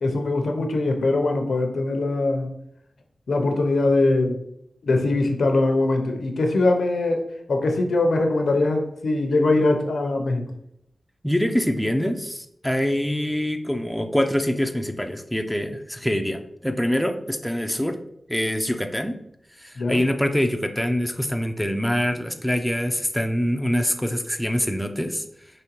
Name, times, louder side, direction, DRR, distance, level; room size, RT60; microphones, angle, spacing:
voice 1, 0.0-2.5 3.3-4.4 4.8-7.2 7.5-10.4 19.8-20.0, left 2 dB, 85° left, 4 dB, 0.6 m, -22 dB
voice 2, 11.2-18.0 18.3-19.1 19.6-25.2, equal, 5° left, 5 dB, 0.4 m, -24 dB
4.9 x 3.1 x 3.0 m, 0.74 s
wide cardioid pair, 75°, 0 cm